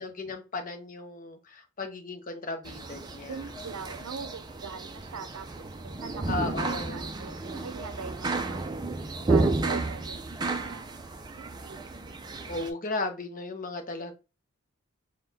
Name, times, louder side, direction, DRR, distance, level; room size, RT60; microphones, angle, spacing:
voice 1, 0.0-3.5 6.3-7.0 12.4-14.1, left 3 dB, 35° left, 0.6 m, -35 dB
sound 1, 2.6-12.7, right 3 dB, 20° right, 0.3 m, -32 dB
voice 2, 3.3-6.4 6.7-11.0 11.3-11.9, right 5 dB, 80° right, 0.5 m, -42 dB
4.0 x 2.2 x 3.8 m
head